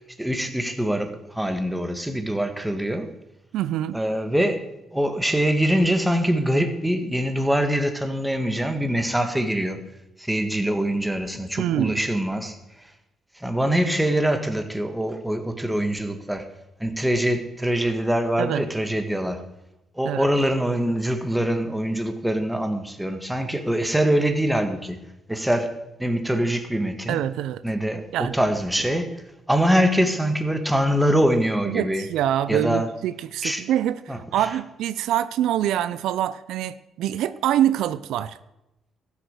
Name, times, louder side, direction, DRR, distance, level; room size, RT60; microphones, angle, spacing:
voice 1, 0.2-3.1 3.9-9.8 10.2-12.6 13.3-16.5 16.8-19.4 19.9-25.0 25.3-27.2 27.6-29.2 29.5-32.1 32.5-32.9 33.4-33.6 34.1-34.5, equal, 5° right, 7 dB, 1.7 m, -24 dB
voice 2, 3.5-4.0 11.6-12.0 18.4-18.6 20.0-20.2 27.1-27.6 28.1-28.4 31.6-38.4, right 11 dB, 85° right, 14 dB, 0.5 m, -25 dB
14.0 x 8.3 x 6.6 m, 0.92 s
cardioid pair, 90°, 0 cm